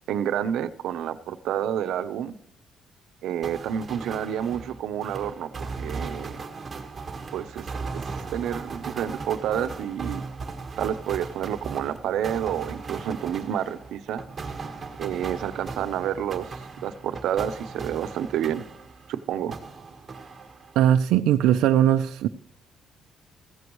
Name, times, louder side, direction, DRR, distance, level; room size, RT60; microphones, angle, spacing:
voice 1, 0.1-2.3 3.2-5.5 5.8-6.4 7.3-7.7 7.9-8.0 8.3-10.2 10.8-14.2 15.0-16.5 16.8-18.7 19.1-19.5, right 9 dB, 70° right, 0.8 m, -29 dB
sound 1, 3.4-19.2 19.5-20.9, right 4 dB, 20° right, 1.6 m, -37 dB
voice 2, 20.8-22.3, right 11 dB, 85° right, 0.5 m, -19 dB
15.0 x 15.0 x 3.1 m
cardioid pair, 155°, 0 cm